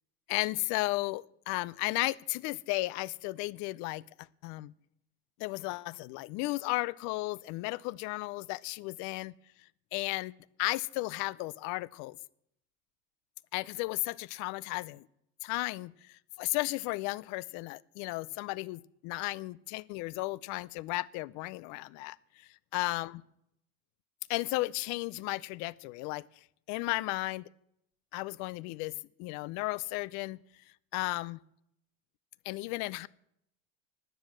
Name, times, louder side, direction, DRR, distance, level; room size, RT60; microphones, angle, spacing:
voice 1, 0.3-4.0 4.4-4.7 5.4-9.3 9.9-10.3 10.6-12.2 13.5-15.1 15.4-23.2 24.3-26.2 26.7-27.5 28.1-28.9 29.2-30.4 30.9-31.4 32.5-33.1, left 21 dB, 70° left, 23 dB, 0.5 m, -34 dB
12.0 x 9.3 x 7.8 m, 0.76 s
cardioid pair, 155°, 29 cm